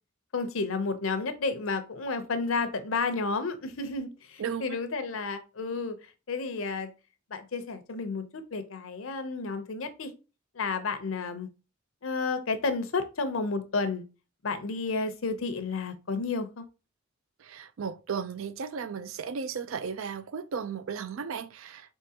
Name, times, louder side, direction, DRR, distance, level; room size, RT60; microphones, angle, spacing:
voice 1, 0.3-6.0 6.3-6.9 7.3-10.1 10.5-11.5 12.0-14.0 14.4-16.7, left 4 dB, 80° left, 0.7 m, -31 dB
voice 2, 4.4-4.8 17.4-21.9, right 6 dB, 75° right, 0.4 m, -35 dB
4.1 x 3.7 x 2.8 m
head